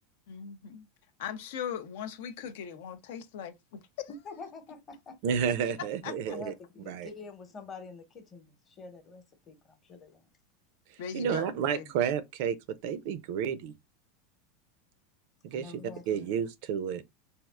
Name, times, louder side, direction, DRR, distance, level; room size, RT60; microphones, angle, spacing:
voice 1, 0.3-0.9 1.2-4.1 6.0-6.4 11.0-11.9, left 8 dB, 70° left, 0.4 m, -39 dB
voice 2, 4.1-4.8 6.2-10.3 15.5-16.3, left 4 dB, 25° left, 0.9 m, -46 dB
voice 3, 5.2-6.5 6.9-7.1 11.1-12.6 12.8-13.7 15.4-15.7 16.1-17.0, right 8 dB, 60° right, 0.4 m, -30 dB
3.4 x 2.3 x 2.2 m
supercardioid pair, 150°, 0 cm